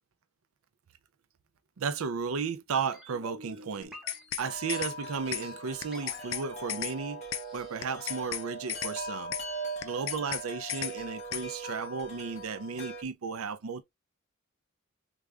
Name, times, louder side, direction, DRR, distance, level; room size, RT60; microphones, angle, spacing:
voice 1, 1.8-3.9 4.4-7.2 7.5-9.3 9.8-13.8, right 5 dB, 85° right, 0.5 m, -34 dB
sound 1, 2.7-8.8 9.0-9.1, left 2 dB, ahead, 1.1 m, -50 dB
sound 2, 3.8-4.4 4.7-4.9 5.3-5.4 5.8-6.4 6.7-6.9 7.3-7.4 7.8-8.4 8.7-8.9 9.3-9.4 9.8-10.4 10.7-10.9 11.3-11.4, left 11 dB, 70° left, 0.4 m, -34 dB
Wind chime, 4.4-13.0, right 2 dB, 35° left, 1.4 m, -41 dB
3.6 x 2.4 x 3.2 m
head